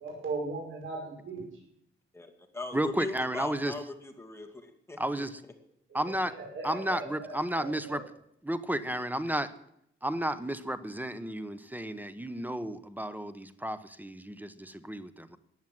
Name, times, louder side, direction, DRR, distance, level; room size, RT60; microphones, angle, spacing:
voice 1, 0.0-1.5 5.9-7.3 7.8-8.0, right 3 dB, 70° right, -2 dB, 5.7 m, -38 dB
voice 2, 2.1-5.3, left 2 dB, 10° left, 3 dB, 2.3 m, -40 dB
voice 3, 2.7-3.7 5.0-5.4 5.9-6.3 6.6-8.0 8.4-9.5 10.0-15.4, right 1 dB, 10° right, 13 dB, 0.9 m, -32 dB
15.0 x 9.3 x 7.7 m, 0.74 s
cardioid pair, 105°, 21 cm